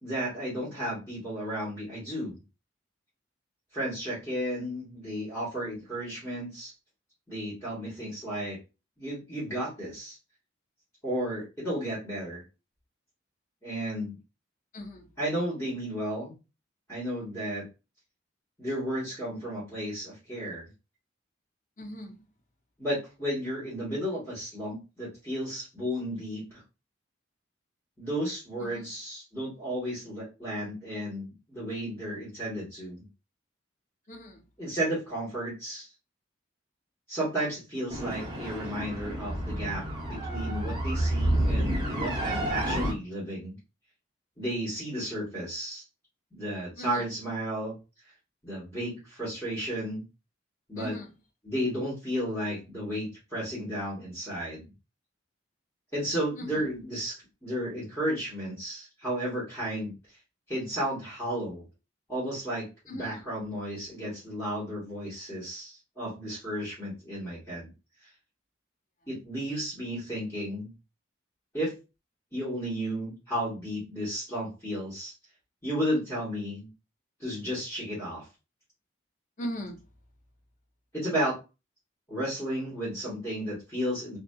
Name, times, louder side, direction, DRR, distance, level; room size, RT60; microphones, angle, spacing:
voice 1, 0.0-2.4 3.7-6.7 7.3-8.6 9.0-10.2 11.0-12.4 13.6-14.2 15.2-16.4 16.9-17.7 18.6-20.6 22.8-26.6 28.0-33.1 34.6-35.9 37.1-43.5 44.4-45.8 46.3-47.8 48.4-50.0 50.7-51.0 51.4-54.7 55.9-59.9 60.5-61.6 62.1-67.7 69.1-70.7 71.5-71.8 72.3-75.1 75.6-76.7 77.2-78.3 80.9-81.4 82.1-84.2, equal, 15° left, 1.3 m, -33 dB
voice 2, 21.8-22.1 28.7-28.8 34.1-34.4 46.8-47.0 50.8-51.1 56.5-56.6 62.9-63.2 79.4-79.7, equal, 40° left, 0.5 m, -38 dB
sound 1, 37.9-42.9, right 1 dB, 25° right, 0.8 m, -29 dB
2.6 x 2.5 x 2.2 m
head